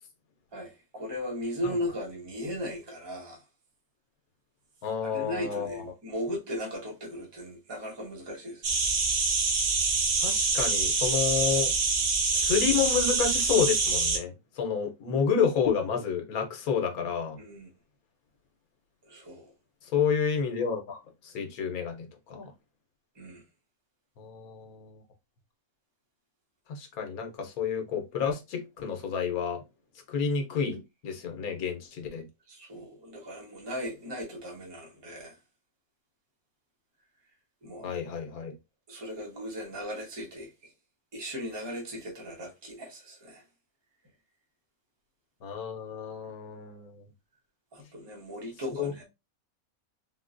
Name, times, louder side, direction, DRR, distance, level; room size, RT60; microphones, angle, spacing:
voice 1, 0.5-3.4 5.0-8.6 17.4-17.7 19.1-19.5 23.2-23.4 32.5-35.4 37.6-37.9 38.9-40.7 41.1-43.4 47.7-49.0, equal, 20° right, 0.8 m, -37 dB
voice 2, 4.8-5.8 10.2-11.7 12.3-17.4 19.9-22.5 24.2-25.0 26.7-29.6 30.1-32.3 37.8-38.5 45.4-46.9 48.8-48.9, left 7 dB, 80° left, 1.3 m, -30 dB
sound 1, 8.6-14.2, right 4 dB, 55° right, 0.7 m, -26 dB
3.7 x 2.2 x 2.5 m
omnidirectional pair, 1.5 m